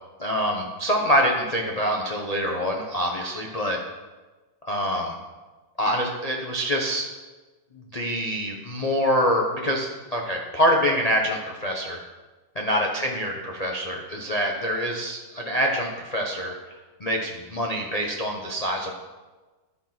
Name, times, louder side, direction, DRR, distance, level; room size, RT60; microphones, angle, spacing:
voice 1, 0.2-3.8 4.6-5.2 5.8-7.0 7.9-12.0 12.6-18.9, equal, 55° left, 0 dB, 0.4 m, -25 dB
11.5 x 4.5 x 5.9 m, 1.2 s
omnidirectional pair, 2.1 m